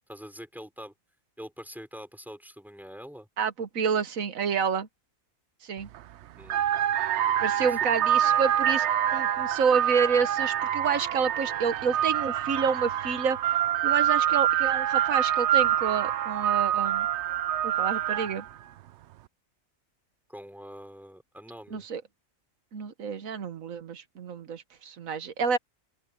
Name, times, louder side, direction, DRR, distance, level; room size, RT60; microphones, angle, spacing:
voice 1, 0.1-0.9 1.4-3.3 6.4-6.6 7.6-7.8 8.5-8.6 20.3-21.9, equal, ahead, 5.5 m, -44 dB
voice 2, 3.4-4.9 5.6-5.9 7.4-8.9 9.1-13.4 13.8-17.1 17.6-18.4 21.7-22.0 22.7-25.6, right 6 dB, 90° right, 1.6 m, -28 dB
sound 1, 5.8-6.0 6.4-18.5, right 11 dB, 65° right, 0.8 m, -26 dB
open air
omnidirectional pair, 1.4 m